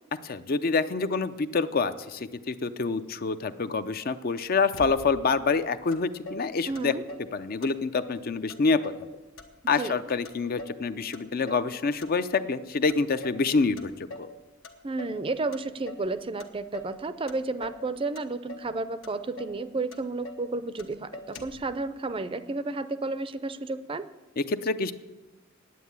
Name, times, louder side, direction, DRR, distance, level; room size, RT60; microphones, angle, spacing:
voice 1, 0.2-6.9 7.3-8.9 9.7-13.9 14.2-14.3 24.4-24.9, left 4 dB, 45° left, 12 dB, 0.5 m, -27 dB
Motor vehicle (road), 4.7-5.4 5.9-6.0 6.3-7.3 7.6-8.2 8.5-9.1 9.4-10.8 11.1-11.7 12.0-12.6 12.9-13.5 13.8-14.4 14.6-15.2 15.5-16.1 16.4-17.0 17.3-17.9 18.2-18.7 19.0-19.1 19.4-19.6 19.9-20.5 20.8-20.9 21.1-21.7, left 2 dB, 80° left, 1.1 m, -43 dB
voice 2, 6.6-7.0 9.7-10.0 14.8-24.1, right 3 dB, 25° right, 13 dB, 0.5 m, -32 dB
9.3 x 9.2 x 8.2 m, 1.1 s
head